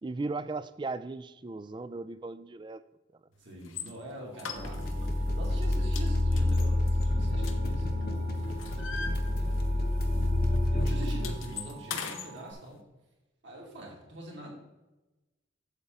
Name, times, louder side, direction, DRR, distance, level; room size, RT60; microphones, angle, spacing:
voice 1, 0.0-2.8, right 3 dB, 25° right, 13 dB, 0.3 m, -37 dB
voice 2, 3.4-9.5 10.7-12.8 13.4-14.5, right 1 dB, 65° right, -3 dB, 2.7 m, -44 dB
sound 1, 3.6-3.9 4.4-5.1 5.4-5.7 6.0-8.0 8.3-9.8 10.1-10.3 10.5-12.3, left 6 dB, 85° left, 0.9 m, -40 dB
Alarm, 4.3-12.5, right 9 dB, 5° right, 0.9 m, -51 dB
sound 2, 4.5-11.3, left 1 dB, 50° left, 0.9 m, -28 dB
8.1 x 7.7 x 3.7 m, 1.0 s
head